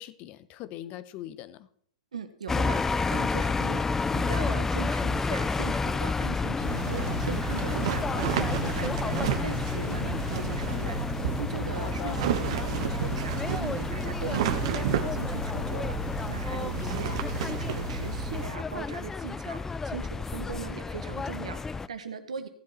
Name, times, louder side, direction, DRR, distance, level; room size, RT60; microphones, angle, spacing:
voice 1, 0.0-1.7 11.8-12.2 16.8-17.2, left 13 dB, 40° left, 14 dB, 1.0 m, -41 dB
voice 2, 2.1-11.0 11.4-16.0 16.3-22.5, right 6 dB, 85° right, 9 dB, 1.5 m, -39 dB
sound 1, 2.5-21.9, left 4 dB, 10° left, 0.4 m, -31 dB
sound 2, 6.6-18.5, right 7 dB, 60° right, 1.4 m, -32 dB
16.0 x 7.5 x 4.3 m, 0.63 s
hypercardioid pair, 120°, 3 cm